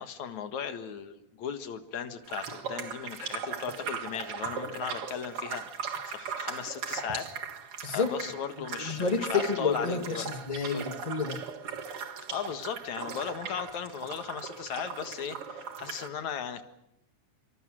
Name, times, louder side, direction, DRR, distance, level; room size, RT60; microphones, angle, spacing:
voice 1, 0.0-7.3 7.9-10.3 10.7-10.9 12.3-16.6, left 7 dB, 70° left, 9 dB, 2.9 m, -37 dB
sound 1, 2.3-16.1, right 6 dB, 50° right, 2.6 m, -38 dB
voice 2, 8.6-11.4, left 4 dB, 20° left, 8 dB, 1.3 m, -30 dB
26.0 x 25.5 x 6.3 m, 0.82 s
omnidirectional pair, 3.5 m